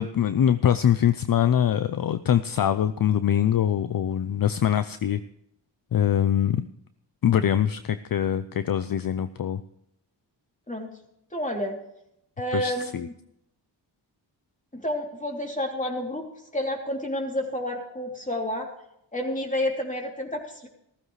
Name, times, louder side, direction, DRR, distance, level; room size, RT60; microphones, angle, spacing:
voice 1, 0.0-5.2 5.9-6.7 7.2-9.6 12.5-13.1, left 10 dB, 50° left, 13 dB, 0.6 m, -23 dB
voice 2, 11.3-11.8 12.4-13.1 14.7-16.2 16.5-18.7 19.1-20.7, left 1 dB, 15° left, 1 dB, 3.2 m, -30 dB
15.0 x 14.5 x 3.3 m, 0.76 s
cardioid pair, 80°, 43 cm